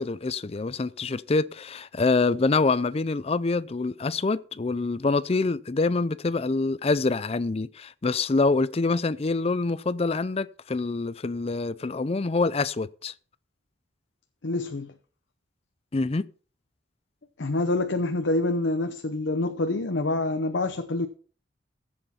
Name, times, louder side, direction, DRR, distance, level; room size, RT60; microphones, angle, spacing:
voice 1, 0.0-13.1 15.9-16.2, left 3 dB, 35° left, 0.5 m, -26 dB
voice 2, 14.4-14.9 17.4-21.1, left 2 dB, 75° left, 0.8 m, -26 dB
15.0 x 7.9 x 4.3 m
head